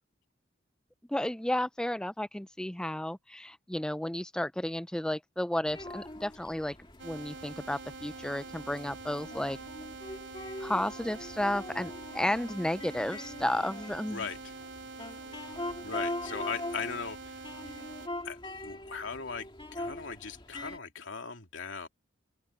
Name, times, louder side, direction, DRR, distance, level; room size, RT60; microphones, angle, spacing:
voice 1, 1.1-6.8 7.0-9.6 10.6-14.2, left 1 dB, 5° left, 0.3 m, -32 dB
sound 1, 5.7-20.8, left 1 dB, 25° left, 2.1 m, -42 dB
sound 2, 7.0-18.1, right 4 dB, 75° right, 2.8 m, -45 dB
voice 2, 14.1-14.5 15.8-17.4 18.2-18.4 18.6-21.9, left 5 dB, 85° left, 2.5 m, -39 dB
open air
head